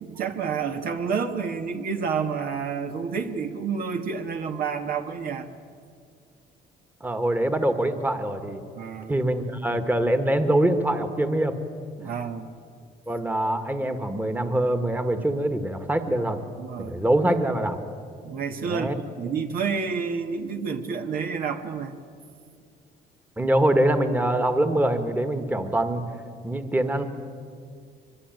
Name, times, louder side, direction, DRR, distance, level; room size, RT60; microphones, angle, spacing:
voice 1, 0.0-5.5 8.8-9.2 12.0-12.5 16.6-17.0 18.2-21.9, right 6 dB, 60° right, 5 dB, 1.7 m, -29 dB
voice 2, 7.0-8.6 9.1-11.6 12.0-12.1 13.1-16.4 16.8-17.8 18.7-19.0 23.4-26.0 26.4-27.1, right 1 dB, 10° right, 8 dB, 1.7 m, -24 dB
24.0 x 22.0 x 9.2 m, 2.2 s
cardioid pair, 110°, 17 cm